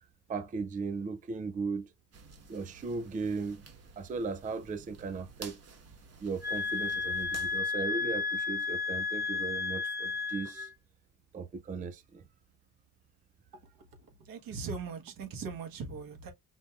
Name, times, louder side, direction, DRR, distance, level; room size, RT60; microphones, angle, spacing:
voice 1, 0.3-1.9 2.5-3.6 4.0-5.6 6.2-10.7 11.3-12.2, right 4 dB, 25° right, 0.4 m, -37 dB
sound 1, 2.1-7.6, right 5 dB, 45° right, 1.3 m, -52 dB
sound 2, 6.4-10.7, left 5 dB, 10° right, 1.0 m, -33 dB
voice 2, 14.2-16.3, right 5 dB, 75° right, 1.4 m, -39 dB
5.3 x 3.3 x 2.3 m
cardioid pair, 165°, 34 cm